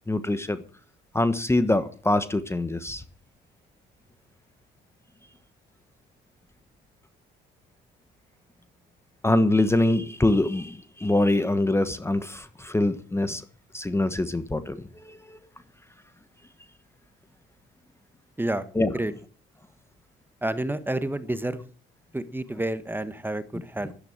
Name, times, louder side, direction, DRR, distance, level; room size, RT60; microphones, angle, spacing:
voice 1, 0.1-0.6 1.1-3.0 9.2-13.4 13.7-14.8 15.0-15.4 18.7-18.9, left 2 dB, 10° left, 12 dB, 1.2 m, -24 dB
voice 2, 20.4-21.6 22.1-23.9, right 1 dB, 10° right, 12 dB, 1.3 m, -29 dB
11.5 x 10.5 x 7.4 m, 0.43 s
supercardioid pair, 80°, 21 cm